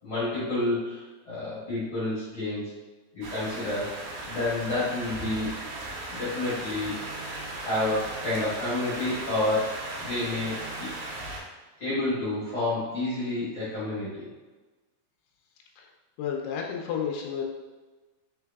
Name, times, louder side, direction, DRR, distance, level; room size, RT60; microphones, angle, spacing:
voice 1, 0.0-2.6 3.1-5.7 6.1-7.0 7.6-10.9 11.8-14.3, left 2 dB, 60° left, -11 dB, 1.3 m, -29 dB
sound 1, 3.2-11.4, right 2 dB, 80° right, 1.7 m, -37 dB
voice 2, 16.2-17.4, left 7 dB, 85° left, 0 dB, 1.9 m, -31 dB
4.8 x 4.0 x 2.3 m, 1.2 s
omnidirectional pair, 4.3 m